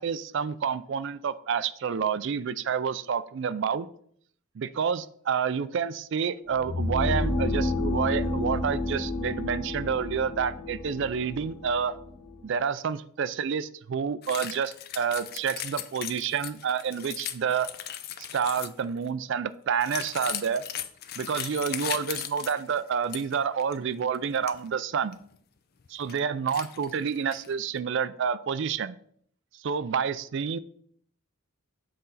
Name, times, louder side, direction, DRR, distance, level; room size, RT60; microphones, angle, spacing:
voice 1, 0.0-3.9 4.6-11.9 12.4-17.7 18.3-20.6 21.2-25.2 25.9-29.0 29.6-30.6, right 6 dB, 55° right, 15 dB, 0.3 m, -29 dB
sound 1, 6.5-12.4, left 2 dB, 90° left, 1.3 m, -30 dB
sound 2, 14.2-18.8 19.8-23.3 23.6-23.8 24.1-24.5 25.1-25.2 25.8-26.2 26.5-27.5, left 10 dB, 45° left, 0.4 m, -37 dB
7.7 x 4.2 x 3.9 m, 0.63 s
head